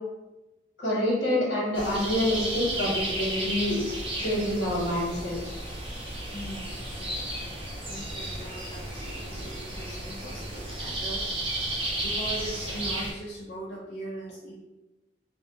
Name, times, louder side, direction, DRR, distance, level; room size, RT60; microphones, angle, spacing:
voice 1, 0.8-3.8 4.2-5.5, left 1 dB, 90° left, -4 dB, 1.0 m, -27 dB
sound 1, 1.7-13.1, right 1 dB, 30° right, 0.6 m, -33 dB
voice 2, 6.3-11.3 12.0-14.5, right 1 dB, 55° left, -5 dB, 0.4 m, -40 dB
2.5 x 2.2 x 2.7 m, 1.1 s
head